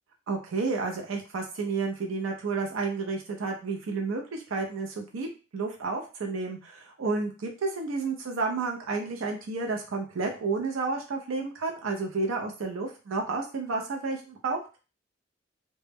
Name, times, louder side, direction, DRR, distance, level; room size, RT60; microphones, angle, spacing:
voice 1, 0.3-14.6, right 4 dB, 85° right, 2 dB, 0.5 m, -31 dB
2.2 x 2.0 x 3.3 m, 0.33 s
head